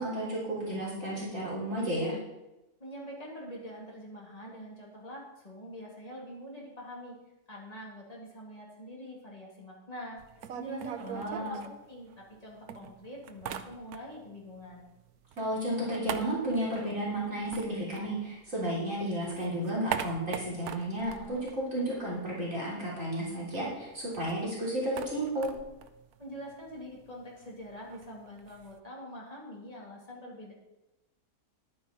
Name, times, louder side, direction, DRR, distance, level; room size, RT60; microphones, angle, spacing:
voice 1, 0.0-2.2 11.0-11.6 15.4-25.5, right 1 dB, 60° right, -6 dB, 3.6 m, -32 dB
voice 2, 2.8-7.2 7.5-10.2 10.5-14.9 26.2-30.5, equal, 25° left, -4 dB, 3.1 m, -45 dB
sound 1, 10.2-12.4 12.7-14.3 14.6-18.7 19.1-22.4 22.6-22.7 23.0-28.8, right 9 dB, 90° right, 1.2 m, -42 dB
11.5 x 9.2 x 4.4 m, 0.98 s
omnidirectional pair, 1.6 m